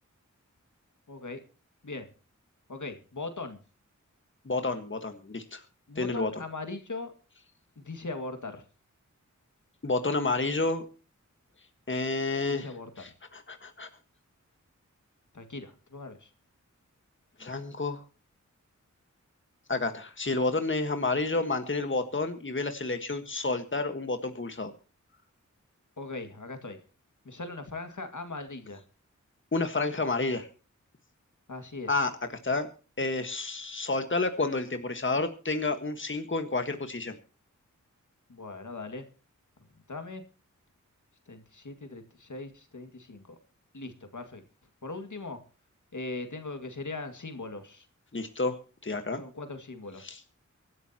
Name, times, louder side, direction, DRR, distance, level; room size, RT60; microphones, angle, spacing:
voice 1, 1.1-1.4 1.8-2.1 2.7-3.6 5.9-7.1 7.8-8.6 12.5-13.0 15.3-16.3 26.0-26.8 27.3-28.8 31.5-31.9 38.3-39.1 39.9-40.2 41.3-43.4 43.7-44.4 44.8-45.4 45.9-47.8 49.1-50.2, left 3 dB, 70° left, 7 dB, 2.1 m, -39 dB
voice 2, 4.4-5.6 5.9-6.3 9.8-10.8 11.9-13.9 17.4-18.0 19.7-24.7 29.5-30.5 31.9-32.1 32.4-32.7 33.0-37.2 48.1-48.6 48.8-49.2 50.0-50.2, left 3 dB, 40° left, 7 dB, 1.5 m, -30 dB
24.0 x 12.0 x 2.9 m, 0.35 s
wide cardioid pair, 65°, 31 cm